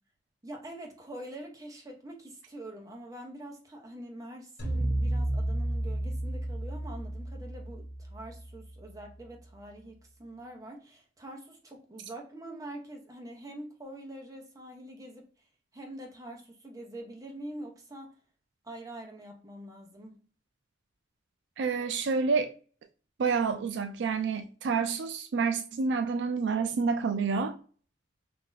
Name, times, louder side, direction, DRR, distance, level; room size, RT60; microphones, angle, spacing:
voice 1, 0.4-15.3 15.7-18.2 18.6-20.2, right 1 dB, 20° right, 0.8 m, -45 dB
sound 1, 4.6-8.9, right 1 dB, 55° left, 1.1 m, -32 dB
voice 2, 21.6-22.5 23.2-27.6, right 5 dB, 75° right, 0.4 m, -28 dB
2.7 x 2.5 x 3.8 m
head